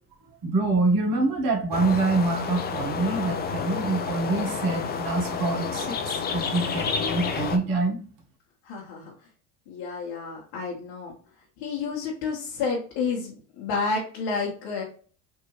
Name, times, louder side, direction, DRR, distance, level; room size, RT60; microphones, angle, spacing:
voice 1, 0.4-8.0, right 3 dB, 45° right, 2 dB, 1.2 m, -25 dB
sound 1, 1.7-7.6, left 6 dB, 20° left, 0.4 m, -30 dB
voice 2, 8.6-9.1 9.7-11.1 11.6-14.8, left 4 dB, 60° left, -2 dB, 1.2 m, -30 dB
3.6 x 2.6 x 3.1 m, 0.42 s
hypercardioid pair, 75°, 49 cm